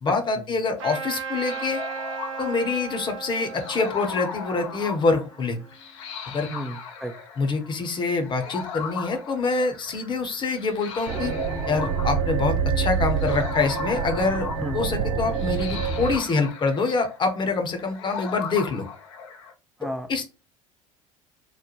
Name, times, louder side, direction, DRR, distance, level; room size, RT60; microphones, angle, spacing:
voice 1, 0.0-1.8 2.4-5.6 6.3-6.5 7.4-11.3 11.7-14.5 14.7-18.9 20.1-20.3, left 4 dB, 30° left, 5 dB, 0.8 m, -25 dB
Trumpet, 0.8-5.8, right 6 dB, 65° right, 1.0 m, -36 dB
alien landscape, 1.5-19.5, left 6 dB, 60° left, 0.6 m, -38 dB
voice 2, 6.5-7.2 14.6-14.9 19.8-20.3, right 1 dB, ahead, 6 dB, 0.4 m, -33 dB
sound 1, 11.1-16.2, right 6 dB, 40° right, 1.2 m, -26 dB
3.1 x 2.1 x 4.1 m, 0.32 s
figure-of-eight pair, 65°, 17 cm